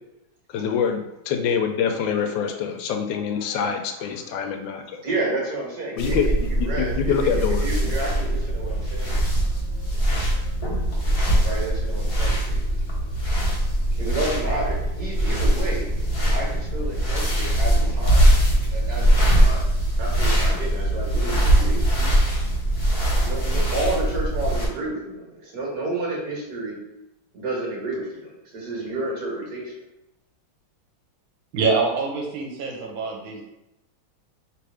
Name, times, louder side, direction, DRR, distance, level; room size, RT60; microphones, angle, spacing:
voice 1, 0.5-5.0 6.0-6.3 6.8-7.6, left 7 dB, 75° left, 5 dB, 1.3 m, -25 dB
voice 2, 5.0-9.4 11.4-12.6 14.0-15.9 16.3-18.3 18.7-19.7 20.0-22.2 23.2-26.8 27.3-29.7, right 2 dB, 55° right, -3 dB, 1.9 m, -30 dB
sound 1, 6.0-24.7, right 1 dB, 25° left, 0.7 m, -21 dB
voice 3, 31.5-33.4, right 4 dB, 80° right, 1 dB, 1.7 m, -25 dB
3.4 x 3.3 x 4.8 m, 0.91 s
omnidirectional pair, 2.1 m